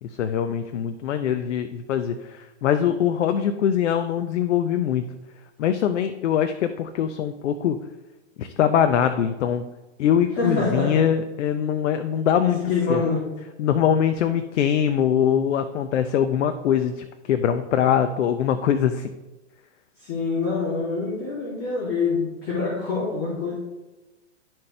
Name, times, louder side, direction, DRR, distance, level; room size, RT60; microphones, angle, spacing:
voice 1, 0.0-5.1 5.6-7.8 8.4-9.6 10.0-12.6 12.9-13.0 13.6-19.1, left 9 dB, 70° left, 9 dB, 0.6 m, -22 dB
voice 2, 10.4-11.0 12.3-13.3 20.0-23.6, left 4 dB, 35° left, -6 dB, 2.6 m, -25 dB
12.5 x 4.4 x 3.3 m, 1.1 s
hypercardioid pair, 140°, 37 cm